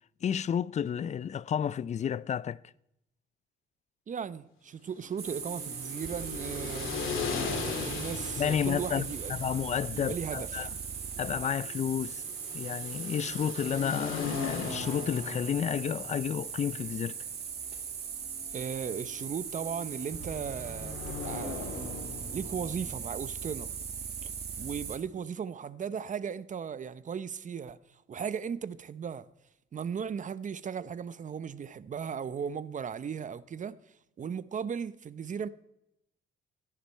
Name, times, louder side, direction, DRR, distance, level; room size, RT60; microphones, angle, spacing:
voice 1, 0.2-2.6 8.4-10.7 11.2-12.2 12.5-17.2, left 8 dB, 35° left, 0.4 m, -31 dB
voice 2, 4.1-6.9 7.8-9.3 9.9-10.7 18.5-21.9 22.3-23.7 24.2-24.3 24.6-29.3 29.7-33.8 34.2-35.5, right 7 dB, 40° right, 0.7 m, -37 dB
sound 1, 5.0-22.9, left 5 dB, 80° left, 2.7 m, -40 dB
sound 2, 5.2-25.0, right 7 dB, 55° right, 2.0 m, -39 dB
16.0 x 10.0 x 4.5 m
cardioid pair, 90°, 20 cm